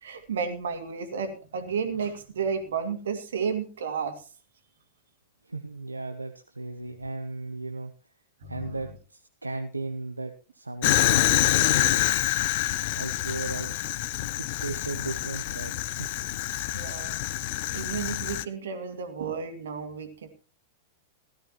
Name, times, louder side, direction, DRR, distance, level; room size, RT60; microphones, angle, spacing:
voice 1, 0.0-4.2 8.4-8.8 16.7-17.4 17.7-20.3, right 6 dB, 65° right, 8 dB, 2.2 m, -32 dB
voice 2, 5.4-7.9 8.5-12.5 13.0-13.7 14.4-16.1, right 3 dB, 85° right, 7 dB, 0.8 m, -36 dB
Fire, 10.8-18.5, left 16 dB, 50° left, 0.6 m, -26 dB
16.5 x 13.0 x 3.0 m, 0.34 s
figure-of-eight pair, 95°, 0 cm